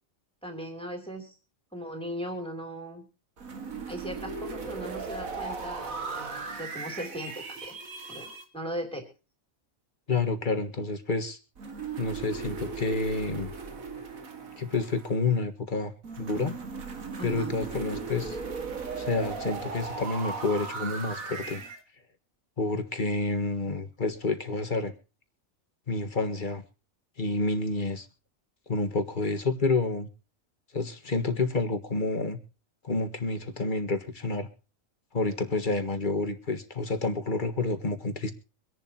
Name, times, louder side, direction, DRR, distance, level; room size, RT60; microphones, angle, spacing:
voice 1, 0.4-1.3 1.7-3.1 3.9-6.3 6.6-7.8 8.1-9.0 17.2-17.6, equal, 5° left, 3 dB, 3.1 m, -38 dB
sound 1, 3.4-8.4 11.6-15.3 16.0-21.8, right 4 dB, 85° right, 2.3 m, -37 dB
voice 2, 10.1-11.4 12.0-13.5 14.6-15.9 16.2-16.6 17.2-18.4 19.0-21.6 22.6-24.9 25.9-26.6 27.2-28.1 28.7-30.1 30.7-32.4 32.8-34.5 35.1-38.3, left 3 dB, 35° left, 8 dB, 1.7 m, -29 dB
24.5 x 11.0 x 2.9 m, 0.34 s
omnidirectional pair, 1.4 m